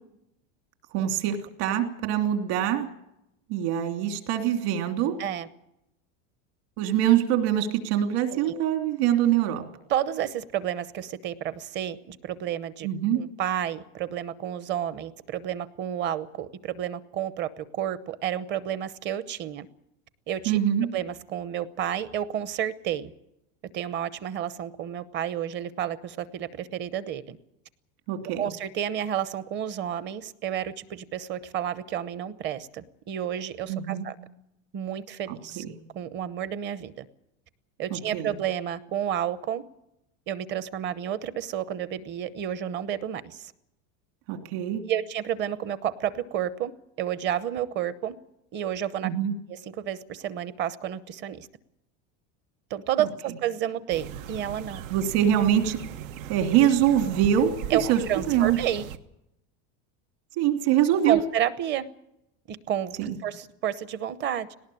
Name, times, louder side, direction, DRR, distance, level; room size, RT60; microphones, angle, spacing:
voice 1, 0.9-2.9 3.5-5.2 6.8-9.6 12.8-13.2 20.4-20.9 28.1-28.4 33.7-34.0 35.3-35.7 37.9-38.3 44.3-44.8 49.0-49.3 54.9-55.8 56.3-58.0 58.3-58.6 60.4-61.2 63.0-63.2, right 10 dB, 55° right, 6 dB, 3.1 m, -24 dB
voice 2, 8.3-8.6 9.9-12.9 13.2-19.7 20.3-20.6 20.9-23.1 23.7-27.4 28.4-34.1 34.7-35.6 35.9-37.1 37.8-39.6 40.3-43.5 44.9-46.7 47.0-48.1 48.5-49.1 49.5-51.5 52.7-54.8 57.7-57.8 58.1-58.9 61.1-61.9 62.5-64.6, right 10 dB, 30° right, 15 dB, 0.8 m, -30 dB
sound 1, 53.9-59.0, right 9 dB, 90° right, 1.5 m, -38 dB
19.0 x 18.5 x 8.6 m, 0.84 s
cardioid pair, 180°, 39 cm